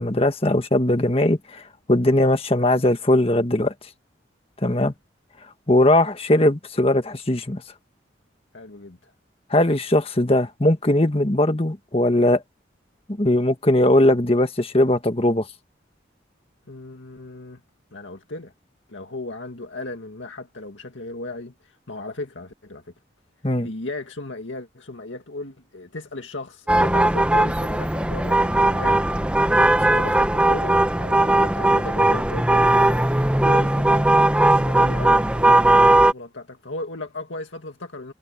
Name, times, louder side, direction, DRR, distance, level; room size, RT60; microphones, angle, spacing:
voice 1, 0.0-1.6 1.9-3.7 4.6-4.9 5.7-7.6 9.5-12.4 13.2-15.5 23.4-23.7, left 1 dB, 30° left, 1.5 m, -19 dB
voice 2, 8.5-9.1 16.7-17.6 17.9-18.5 18.9-22.9 23.6-29.1 29.5-38.1, left 2 dB, 85° left, 2.1 m, -36 dB
sound 1, 26.7-36.1, right 1 dB, 5° right, 0.9 m, -18 dB
head